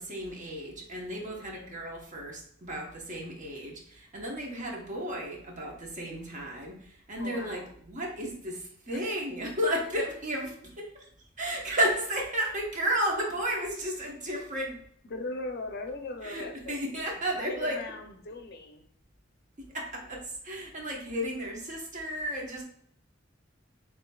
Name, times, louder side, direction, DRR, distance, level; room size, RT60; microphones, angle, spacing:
voice 1, 0.0-11.0 11.4-14.8 16.2-17.8 19.7-22.6, equal, 40° right, -1 dB, 1.0 m, -33 dB
voice 2, 1.2-1.8 7.2-7.7 8.9-9.1 15.1-16.8 17.1-18.8, left 2 dB, 55° left, 5 dB, 0.6 m, -40 dB
7.0 x 2.6 x 2.3 m, 0.62 s
head